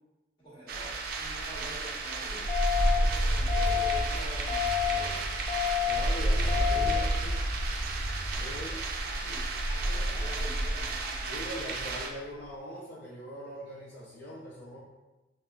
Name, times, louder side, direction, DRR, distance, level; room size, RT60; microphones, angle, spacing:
voice 1, 0.4-5.2 6.3-7.4 9.0-11.5, equal, 25° left, -9 dB, 1.2 m, -45 dB
sound 1, 0.7-12.1, right 1 dB, 60° right, 0.4 m, -30 dB
sound 2, 2.5-3.0 3.5-4.0 4.5-5.0 5.5-6.0 6.5-7.0, left 12 dB, 10° left, 0.4 m, -29 dB
sound 3, 3.9-12.6, equal, 10° right, 1.1 m, -41 dB
voice 2, 5.8-7.0 8.3-8.8 11.2-14.8, equal, 60° left, -6 dB, 0.6 m, -41 dB
4.3 x 2.1 x 2.4 m, 1.1 s
head